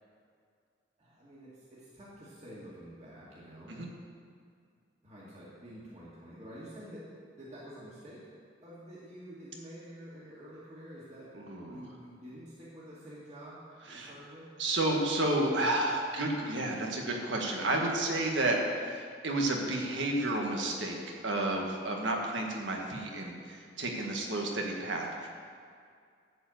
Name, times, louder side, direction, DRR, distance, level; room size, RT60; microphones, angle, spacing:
voice 1, 1.0-3.8 5.0-8.3 8.6-11.3 11.7-13.6 13.9-14.5, equal, 40° right, -9 dB, 2.2 m, -48 dB
voice 2, 11.3-11.8 13.8-14.1 14.6-18.6 18.8-21.0 21.2-25.3, right 2 dB, 80° right, 0 dB, 1.6 m, -31 dB
12.0 x 4.7 x 7.8 m, 2.2 s
head